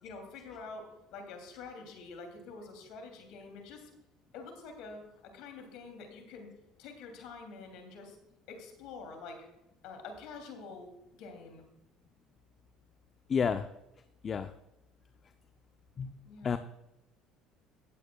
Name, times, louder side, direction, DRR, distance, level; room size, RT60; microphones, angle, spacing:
voice 1, 0.0-3.9 4.3-6.5 6.8-8.2 8.5-9.5 9.8-10.9 11.2-11.6 16.2-16.6, left 4 dB, 70° left, 4 dB, 2.9 m, -47 dB
voice 2, 13.3-13.7 14.2-14.5 16.0-16.1 16.4-16.6, left 6 dB, 40° left, 9 dB, 0.6 m, -29 dB
17.0 x 8.6 x 2.3 m, 0.91 s
hypercardioid pair, 75°, 0 cm